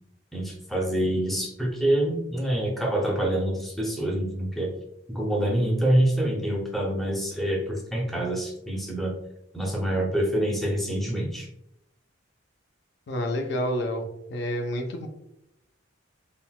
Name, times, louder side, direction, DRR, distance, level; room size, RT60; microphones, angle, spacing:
voice 1, 0.3-4.7 5.1-9.1 9.5-11.5, right 1 dB, ahead, -1 dB, 0.5 m, -26 dB
voice 2, 13.1-15.1, equal, 60° left, 4 dB, 0.4 m, -29 dB
3.7 x 2.1 x 2.3 m, 0.80 s
head